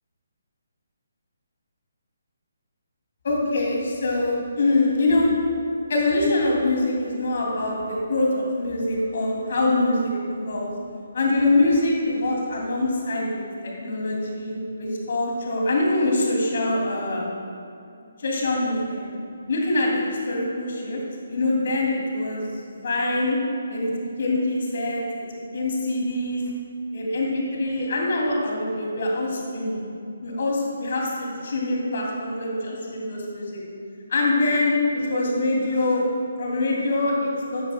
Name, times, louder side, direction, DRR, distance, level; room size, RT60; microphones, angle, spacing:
voice 1, 3.2-5.3 5.9-10.7 11.1-17.2 18.2-19.1 19.5-21.0 21.3-23.4 23.7-26.4 26.9-29.8 30.2-33.6 34.1-36.0 36.4-37.6, left 2 dB, 50° left, -2 dB, 2.7 m, -24 dB
13.0 x 12.5 x 2.3 m, 2.5 s
figure-of-eight pair, 140°, 0 cm